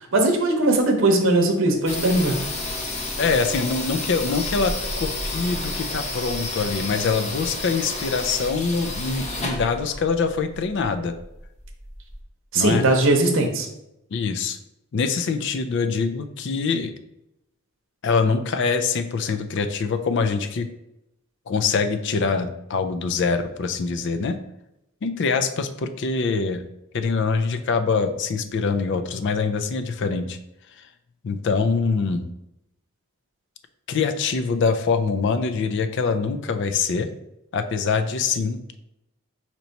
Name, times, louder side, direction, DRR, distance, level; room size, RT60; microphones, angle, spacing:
voice 1, 0.1-2.4 12.5-13.7, right 2 dB, 65° right, 2 dB, 0.8 m, -19 dB
sound 1, 1.9-12.2, left 2 dB, 35° left, 0.8 m, -31 dB
voice 2, 3.2-11.1 12.5-12.8 14.1-14.6 14.9-16.9 18.0-20.7 21.5-24.4 25.0-26.6 26.9-30.4 31.2-32.3 33.9-37.1 37.5-38.8, left 4 dB, 60° left, 9 dB, 0.4 m, -24 dB
4.5 x 2.9 x 4.0 m, 0.84 s
head